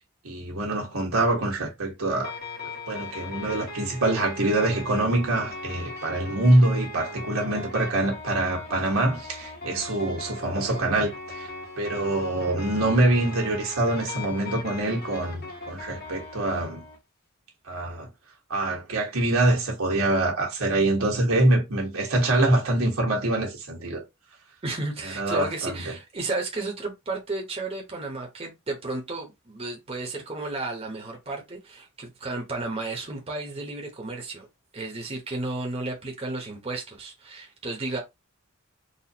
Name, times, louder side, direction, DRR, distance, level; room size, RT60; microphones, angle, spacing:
voice 1, 0.2-2.3 2.9-11.5 11.8-16.8 17.7-18.1 18.5-24.0 25.0-25.9, right 2 dB, 80° right, 1.4 m, -25 dB
sound 1, 2.2-17.0, left 2 dB, 50° left, 1.2 m, -39 dB
voice 2, 24.6-34.5 34.7-38.0, right 2 dB, 30° right, 0.9 m, -33 dB
4.1 x 2.5 x 2.8 m
head